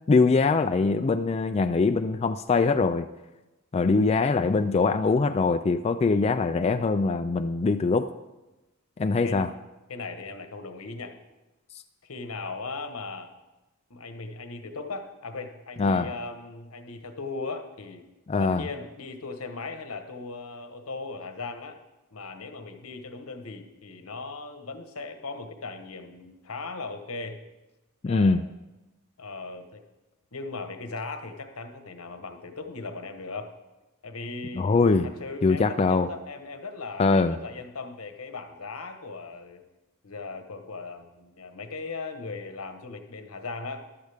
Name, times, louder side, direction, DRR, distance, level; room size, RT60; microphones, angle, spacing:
voice 1, 0.1-3.1 3.7-8.1 9.0-9.5 15.8-16.1 18.3-18.6 28.0-28.4 34.6-35.1 35.4-36.1 37.0-37.4, left 4 dB, 30° left, 8 dB, 0.3 m, -22 dB
voice 2, 9.9-11.2 12.0-13.3 13.9-18.0 18.4-21.8 22.1-27.4 28.0-28.5 29.2-29.8 30.3-33.5 34.0-34.7 35.0-39.6 40.0-43.8, left 3 dB, 80° left, 7 dB, 1.2 m, -38 dB
14.5 x 11.5 x 3.5 m, 1.0 s
head